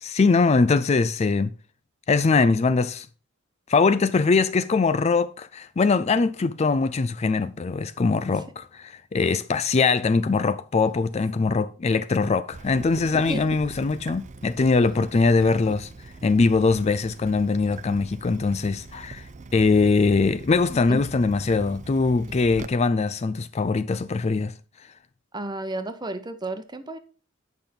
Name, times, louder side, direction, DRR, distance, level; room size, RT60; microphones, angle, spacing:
voice 1, 0.0-1.5 2.1-3.1 3.7-15.9 16.2-24.5, left 4 dB, 35° left, 0.4 m, -22 dB
Water tap faucet / Drip, 12.5-22.7, right 3 dB, 35° right, 0.5 m, -41 dB
voice 2, 25.3-27.0, right 2 dB, 20° right, 0.9 m, -32 dB
9.2 x 5.8 x 5.1 m
head